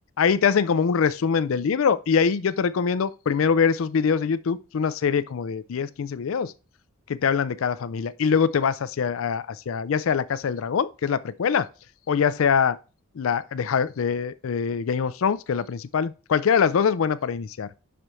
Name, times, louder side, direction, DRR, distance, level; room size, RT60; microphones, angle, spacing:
voice 1, 0.2-6.5 7.1-11.7 12.1-12.8 13.2-17.7, left 6 dB, 75° left, 0.4 m, -23 dB
6.1 x 5.0 x 4.2 m
head